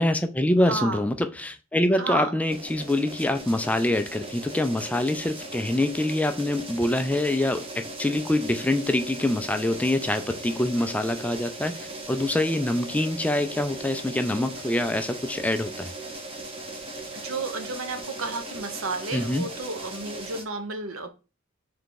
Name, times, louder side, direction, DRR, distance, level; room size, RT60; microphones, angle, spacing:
voice 1, 0.0-15.9 19.1-19.5, left 1 dB, 5° left, 0.3 m, -25 dB
voice 2, 0.6-1.0 2.0-2.3 17.1-21.1, right 3 dB, 80° right, 0.9 m, -32 dB
sound 1, 2.5-20.4, right 2 dB, 25° right, 0.9 m, -38 dB
3.6 x 3.4 x 3.8 m
head